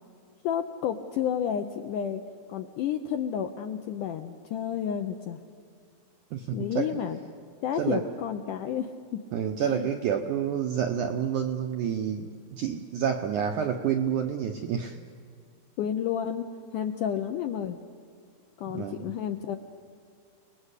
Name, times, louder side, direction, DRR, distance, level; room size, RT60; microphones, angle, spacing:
voice 1, 0.4-2.2 2.5-5.4 6.5-7.2 7.6-9.2 9.6-9.9 15.8-16.5 16.7-17.8 18.6-19.6, left 9 dB, 80° left, 6 dB, 1.9 m, -31 dB
voice 2, 6.3-7.0 7.8-8.0 9.3-15.0 18.7-19.1, right 8 dB, 75° right, 5 dB, 1.8 m, -29 dB
29.5 x 20.5 x 8.3 m, 2.1 s
omnidirectional pair, 4.7 m